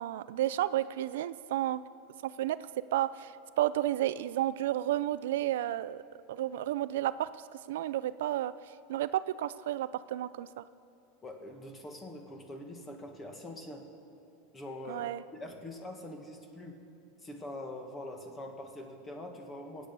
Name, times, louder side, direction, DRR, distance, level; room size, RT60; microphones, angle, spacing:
voice 1, 0.0-1.8 2.2-6.0 6.3-7.3 7.7-8.5 8.9-10.6 14.9-15.2, right 13 dB, 80° right, 15 dB, 0.3 m, -32 dB
voice 2, 11.2-13.9 14.5-16.8 17.2-19.9, left 1 dB, 20° left, 4 dB, 1.7 m, -44 dB
22.5 x 8.8 x 5.3 m, 2.7 s
supercardioid pair, 135°, 0 cm